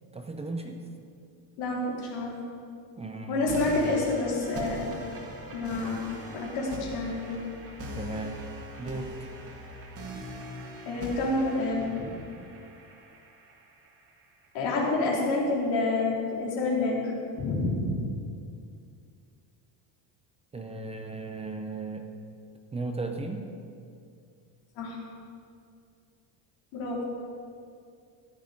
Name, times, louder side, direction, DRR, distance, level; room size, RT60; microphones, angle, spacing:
voice 1, 0.1-0.8 3.0-3.4 7.9-8.4 8.8-9.3 20.5-22.0 22.7-23.5, right 3 dB, 15° right, 4 dB, 0.6 m, -35 dB
voice 2, 1.6-2.4 3.3-4.9 5.5-6.0 6.3-7.4 10.9-12.1 14.5-18.0 24.8-25.0 26.7-27.0, left 2 dB, 90° left, -4 dB, 4.0 m, -28 dB
sound 1, 3.5-14.4, right 1 dB, 30° right, 1.9 m, -41 dB
14.5 x 11.0 x 5.3 m, 2.4 s
cardioid pair, 165°, 47 cm